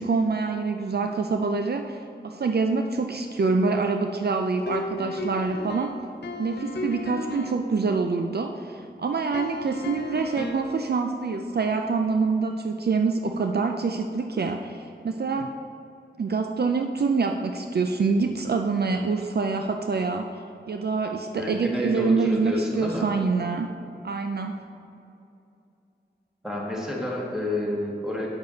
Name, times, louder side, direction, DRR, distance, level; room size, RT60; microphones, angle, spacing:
voice 1, 0.0-5.9 6.4-15.5 16.2-20.3 20.7-23.7 24.0-24.6, right 4 dB, 60° right, 5 dB, 0.5 m, -26 dB
sound 1, 4.7-7.7 9.3-10.8, left 2 dB, 65° left, 0.7 m, -34 dB
voice 2, 21.3-23.0 26.4-28.3, left 1 dB, 5° right, -4 dB, 1.9 m, -29 dB
7.9 x 6.6 x 4.1 m, 2.7 s
wide cardioid pair, 55°, 19 cm